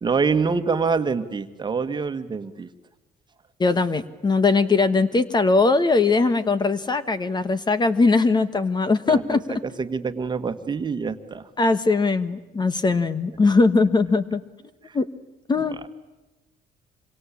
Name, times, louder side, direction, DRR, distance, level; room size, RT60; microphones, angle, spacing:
voice 1, 0.0-2.7 9.1-11.5 14.8-15.0, right 5 dB, 25° right, 10 dB, 1.7 m, -26 dB
voice 2, 3.6-9.4 11.6-14.4 14.9-15.1 15.5-15.8, left 3 dB, 25° left, 13 dB, 1.3 m, -20 dB
26.5 x 24.5 x 8.6 m, 1.1 s
cardioid pair, 110°, 17 cm